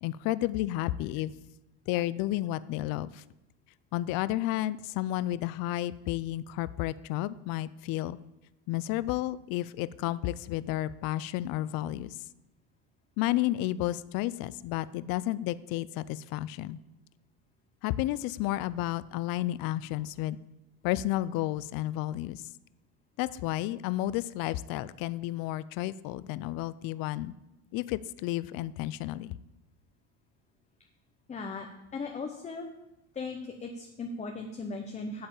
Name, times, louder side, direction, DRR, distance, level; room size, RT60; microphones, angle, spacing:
voice 1, 0.0-1.3 1.9-3.2 3.9-8.2 8.7-12.2 13.2-16.8 17.8-20.4 20.8-22.4 23.2-27.3 27.7-29.4, left 15 dB, 55° left, 17 dB, 0.5 m, -31 dB
voice 2, 31.3-32.7 33.1-35.3, left 3 dB, 15° left, 3 dB, 0.8 m, -38 dB
8.7 x 7.9 x 7.1 m, 0.93 s
cardioid pair, 155°, 42 cm